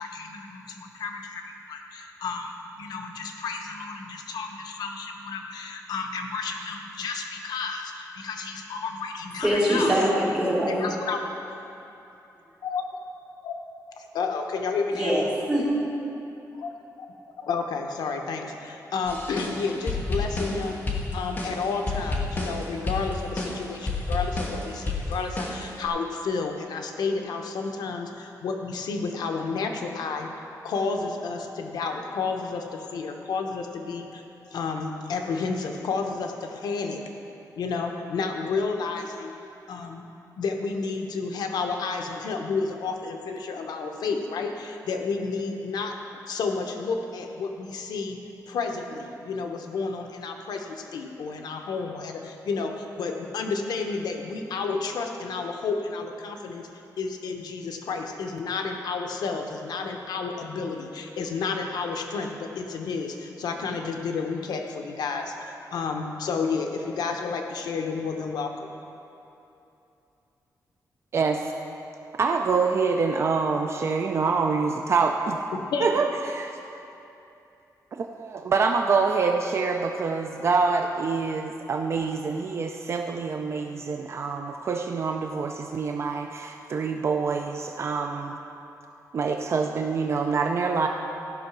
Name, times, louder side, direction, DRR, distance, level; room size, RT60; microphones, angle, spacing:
voice 1, 0.0-10.0 10.7-11.2 12.6-12.8 13.4-13.5 14.0-15.1 16.6-16.7 17.4-20.8 21.1-34.2 34.5-37.0 37.6-39.3 39.7-40.0 40.4-46.0 46.3-48.2 48.5-56.7 57.0-68.7 75.5-75.9, left 4 dB, 85° left, 4 dB, 0.9 m, -31 dB
voice 2, 9.4-10.9 14.9-15.7, equal, 10° right, -9 dB, 2.9 m, -23 dB
sound 1, 19.1-25.9, left 2 dB, 30° left, 1.3 m, -30 dB
voice 3, 72.2-75.4 75.8-76.6 77.9-88.4 89.1-90.9, right 4 dB, 40° right, 3 dB, 0.4 m, -26 dB
14.0 x 5.7 x 6.1 m, 2.9 s
wide cardioid pair, 175°, 7 cm